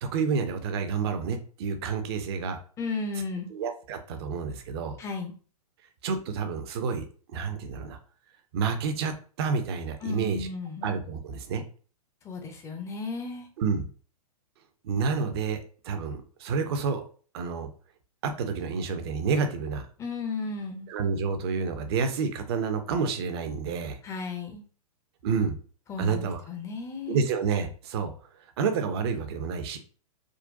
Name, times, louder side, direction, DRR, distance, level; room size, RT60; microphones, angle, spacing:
voice 1, 0.0-2.6 3.5-5.0 6.0-8.0 8.5-10.5 10.8-11.6 13.6-13.8 14.8-17.0 17.3-17.7 18.2-19.9 20.9-24.0 25.2-25.6 26.0-26.4 27.1-28.1 28.6-29.8, right 5 dB, 40° right, 8 dB, 0.6 m, -29 dB
voice 2, 2.8-3.5 5.0-5.3 10.0-10.9 12.2-13.5 20.0-20.9 24.0-24.6 25.9-27.2, left 4 dB, 15° left, 3 dB, 0.6 m, -34 dB
3.8 x 2.2 x 2.5 m, 0.40 s
figure-of-eight pair, 110°, 20 cm